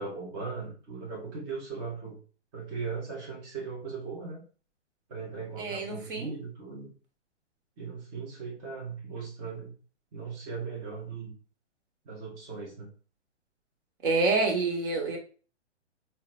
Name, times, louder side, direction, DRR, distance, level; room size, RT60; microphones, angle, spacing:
voice 1, 0.0-2.2 2.5-4.4 5.1-6.9 7.8-9.7 10.1-11.3 12.0-12.9, right 4 dB, 20° right, -3 dB, 0.7 m, -38 dB
voice 2, 5.6-6.3 14.0-15.2, right 3 dB, 45° right, 2 dB, 1.1 m, -27 dB
3.8 x 2.1 x 4.2 m, 0.39 s
figure-of-eight pair, 125°, 36 cm